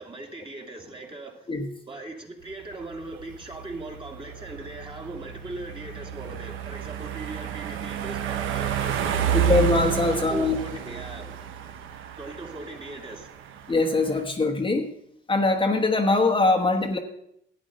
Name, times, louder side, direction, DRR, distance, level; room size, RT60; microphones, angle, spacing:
voice 1, 0.0-1.5 1.9-9.5 10.0-11.3 12.2-13.3, right 2 dB, 25° right, 1 dB, 2.4 m, -39 dB
sound 1, 2.5-14.2, right 8 dB, 90° right, 1.0 m, -31 dB
voice 2, 9.3-10.6 13.7-14.9 15.3-17.0, left 2 dB, 25° left, 1 dB, 1.2 m, -22 dB
11.5 x 9.0 x 5.3 m, 0.74 s
cardioid pair, 90°, 20 cm